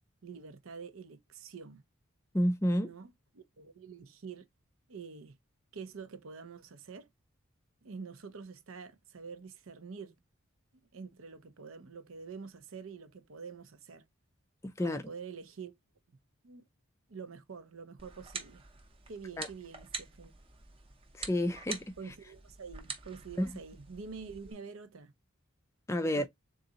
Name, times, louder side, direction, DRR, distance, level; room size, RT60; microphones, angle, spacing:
voice 1, 0.2-1.8 2.8-4.4 4.9-5.4 5.7-7.1 7.8-10.2 10.9-14.0 14.8-15.7 16.1-16.2 16.4-16.6 17.1-18.6 19.1-20.3 22.0-25.1 26.0-26.3, right 5 dB, 75° right, 0.6 m, -46 dB
voice 2, 2.3-2.9 14.8-15.0 19.4-19.5 21.1-21.9 23.4-23.5 25.9-26.3, equal, 15° left, 0.3 m, -30 dB
sound 1, 18.0-24.5, right 5 dB, 25° right, 0.7 m, -46 dB
3.8 x 2.5 x 3.9 m
head